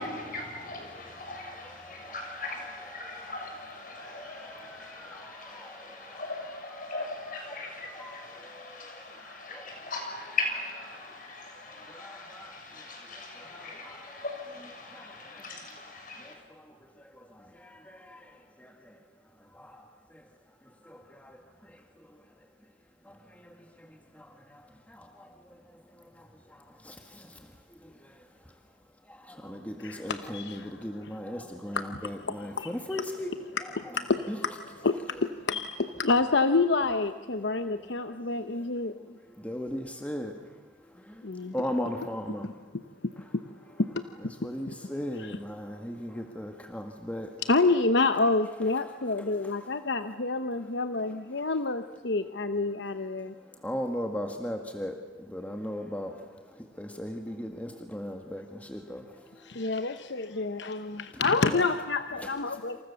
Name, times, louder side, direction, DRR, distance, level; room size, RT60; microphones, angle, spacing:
voice 1, 0.0-16.3, left 3 dB, 45° left, 6.6 m, -39 dB
voice 2, 0.6-8.8 9.2-9.8 10.9-11.0 11.9-12.6 13.4-14.2 14.9-15.1 16.2-16.3 17.1-18.3 18.6-18.7 19.6-19.8 20.9-21.4 23.1-23.2 23.8-23.9 24.2-24.6 24.9-25.3 26.2-26.3 26.8-27.3 27.8-27.9 29.1-31.8 32.0-33.3 34.3-34.4 38.0-38.1 39.4-40.3 41.1-41.2 41.5-42.5 44.4-47.3 53.6-54.9 55.3-56.1 56.8-59.1, equal, 10° left, 1.9 m, -38 dB
voice 3, 29.8-31.2 31.7-33.1 33.6-38.9 41.2-41.5 42.4-43.4 43.8-44.7 45.1-45.4 47.4-53.3 59.4-62.8, left 3 dB, 70° left, 1.0 m, -29 dB
28.0 x 28.0 x 7.1 m
head